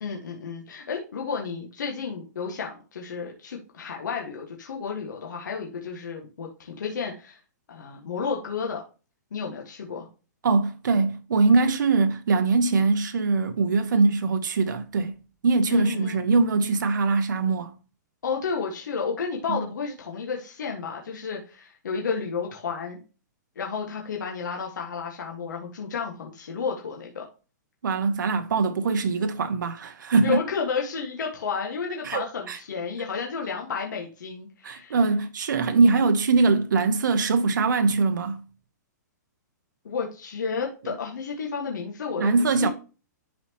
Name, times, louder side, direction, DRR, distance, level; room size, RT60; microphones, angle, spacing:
voice 1, 0.0-7.4 7.7-8.8 9.3-10.1 15.7-16.2 18.2-23.0 23.5-27.2 30.2-35.0 39.8-42.7, left 5 dB, 75° left, 1.7 m, -32 dB
voice 2, 10.4-15.2 15.4-17.7 19.5-19.6 27.8-30.4 32.0-32.6 34.6-38.4 40.8-40.9 42.2-42.7, right 4 dB, 85° right, 0.8 m, -22 dB
11.0 x 4.3 x 3.0 m
hypercardioid pair, 175°, 10 cm